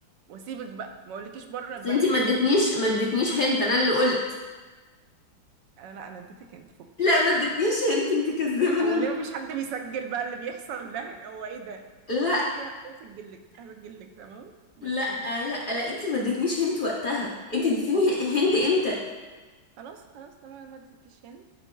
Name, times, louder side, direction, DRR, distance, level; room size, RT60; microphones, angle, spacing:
voice 1, 0.3-2.4 3.4-3.5 5.8-6.9 8.8-11.8 12.2-14.5 14.8-15.3 19.8-21.4, right 6 dB, 75° right, 5 dB, 1.2 m, -38 dB
voice 2, 1.8-4.2 7.0-9.1 12.1-12.4 14.8-19.0, left 2 dB, 85° left, -5 dB, 0.4 m, -24 dB
10.0 x 4.6 x 2.2 m, 1.3 s
omnidirectional pair, 2.1 m